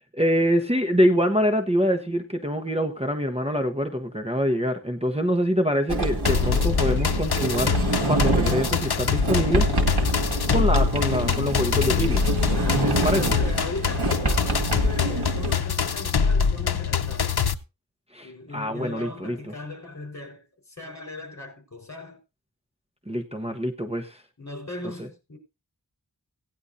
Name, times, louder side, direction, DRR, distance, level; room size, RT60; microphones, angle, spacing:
voice 1, 0.1-7.8 8.1-10.0 10.5-12.3 13.0-13.2 18.1-19.5 23.1-24.2 25.0-25.1, equal, 15° right, 1.1 m, -25 dB
Sliding door, 5.9-15.5, right 2 dB, 70° right, 1.8 m, -26 dB
sound 1, 6.3-17.5, left 6 dB, 70° left, 0.7 m, -24 dB
voice 2, 12.5-17.4 18.2-20.4 20.8-22.2 24.4-25.4, left 2 dB, 40° left, 4.2 m, -38 dB
17.0 x 10.0 x 2.7 m
wide cardioid pair, 50°, 40 cm